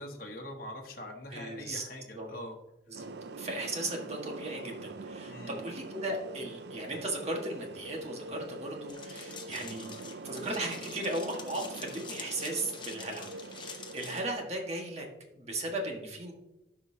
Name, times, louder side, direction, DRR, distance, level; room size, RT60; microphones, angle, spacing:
voice 1, 0.0-2.6 2.9-3.1 5.3-5.6, left 1 dB, 55° left, 1 dB, 1.2 m, -43 dB
voice 2, 1.3-1.9 2.1-2.3 2.9-9.9 10.2-15.1 15.3-16.3, right 2 dB, 40° right, 1 dB, 1.6 m, -36 dB
sound 1, 2.9-14.3, right 3 dB, 65° right, 0.4 m, -44 dB
sound 2, 8.9-14.2, left 6 dB, 25° left, 0.8 m, -46 dB
12.0 x 5.5 x 2.8 m, 0.96 s
head